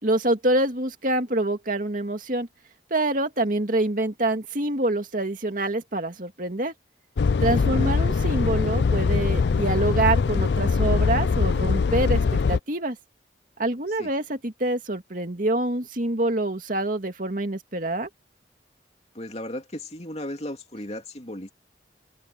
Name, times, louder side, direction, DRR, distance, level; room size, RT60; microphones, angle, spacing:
voice 1, 0.0-2.5 2.9-6.7 7.4-13.0 13.6-18.1, right 2 dB, 50° right, 2.4 m, -26 dB
sound 1, 7.2-12.6, left 5 dB, 70° left, 0.4 m, -22 dB
voice 2, 7.5-8.1 14.0-14.1 19.1-21.5, left 1 dB, 35° left, 2.9 m, -36 dB
open air
head